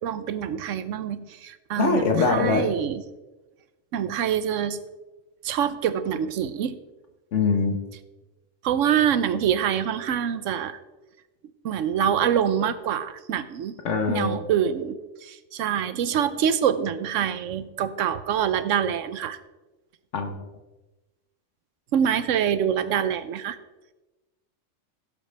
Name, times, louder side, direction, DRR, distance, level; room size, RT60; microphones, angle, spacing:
voice 1, 0.0-3.0 3.9-4.8 5.4-6.8 8.6-10.8 11.6-13.7 14.1-19.4 21.9-23.6, right 8 dB, 85° right, 13 dB, 1.1 m, -25 dB
voice 2, 1.8-2.7 7.3-7.8 13.8-14.4 20.1-20.4, left 4 dB, 75° left, 5 dB, 1.3 m, -22 dB
16.5 x 7.5 x 3.3 m, 1.1 s
omnidirectional pair, 1.3 m